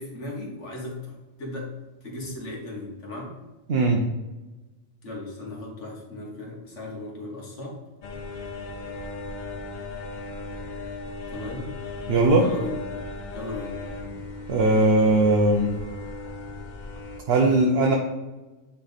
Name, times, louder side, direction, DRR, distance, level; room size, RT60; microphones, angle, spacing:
voice 1, 0.0-1.7 2.0-3.4 5.0-7.8 11.3-11.7 12.4-12.8 13.3-13.8, left 2 dB, 65° left, -2 dB, 1.9 m, -36 dB
voice 2, 3.7-4.0 12.1-12.5 14.5-15.7 17.3-18.0, right 2 dB, 55° right, 1 dB, 0.9 m, -19 dB
sound 1, 8.0-17.2, left 3 dB, 45° left, 0.6 m, -37 dB
9.3 x 3.5 x 4.1 m, 1.1 s
omnidirectional pair, 1.3 m